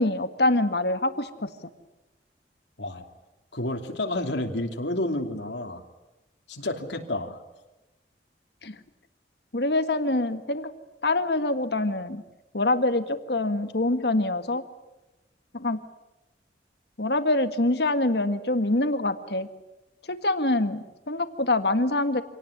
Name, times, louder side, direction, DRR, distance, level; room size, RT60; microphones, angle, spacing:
voice 1, 0.0-1.5 8.6-8.8 9.5-10.7 11.0-12.2 12.5-14.6 15.5-15.8 17.0-19.5 20.1-22.2, left 2 dB, 70° left, 9 dB, 1.8 m, -25 dB
voice 2, 3.5-5.8 6.5-7.4, left 1 dB, 85° left, 3 dB, 3.0 m, -30 dB
27.0 x 18.5 x 9.9 m, 1.0 s
head